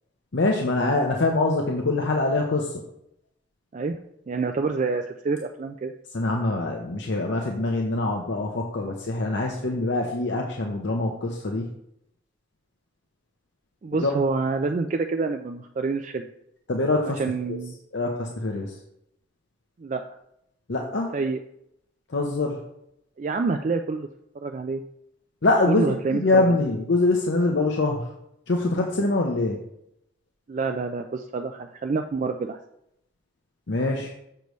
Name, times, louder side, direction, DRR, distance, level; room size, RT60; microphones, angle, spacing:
voice 1, 0.3-2.8 6.1-11.7 14.0-14.2 16.7-17.2 17.5-17.6 17.9-18.7 20.7-21.1 22.1-22.6 25.4-28.1 28.5-29.6 33.7-34.1, left 2 dB, 60° left, 1 dB, 0.7 m, -24 dB
voice 2, 4.3-5.9 13.8-16.3 17.2-17.8 19.8-20.0 21.1-21.4 23.2-24.1 24.4-24.8 25.7-26.6 30.5-32.6, right 4 dB, 40° right, 5 dB, 0.3 m, -27 dB
6.6 x 6.6 x 3.1 m, 0.78 s
head